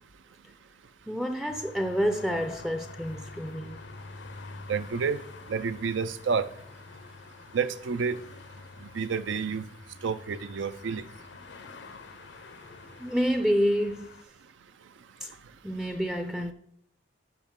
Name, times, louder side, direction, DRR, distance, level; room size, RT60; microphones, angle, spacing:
voice 1, 1.1-3.8 13.0-14.1 15.2-15.3 15.6-16.5, equal, ahead, 0.4 m, -28 dB
sound 1, 1.5-14.2, left 3 dB, 65° left, 0.6 m, -47 dB
voice 2, 4.7-5.2 5.5-6.4 7.5-8.2 8.9-9.6 10.0-11.0, right 5 dB, 80° right, 0.4 m, -29 dB
10.5 x 5.3 x 3.7 m
head